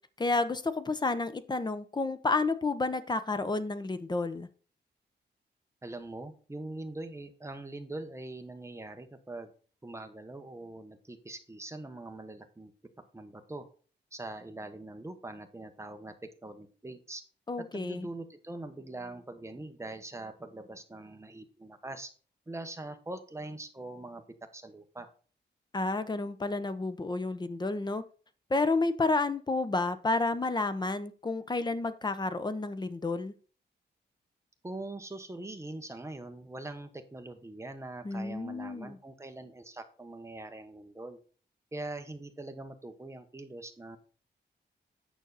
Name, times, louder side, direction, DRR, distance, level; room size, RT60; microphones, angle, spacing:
voice 1, 0.2-4.5 17.5-18.1 25.7-28.0 28.5-33.3 38.0-39.0, left 3 dB, 25° left, 12 dB, 0.8 m, -30 dB
voice 2, 5.8-9.5 9.8-12.7 13.1-13.7 14.1-16.1 16.4-17.2 17.7-22.1 22.5-24.2 24.5-25.1 34.6-41.2 41.7-44.0, right 2 dB, 15° right, 7 dB, 1.1 m, -42 dB
9.3 x 6.3 x 4.0 m, 0.39 s
wide cardioid pair, 150°, 19 cm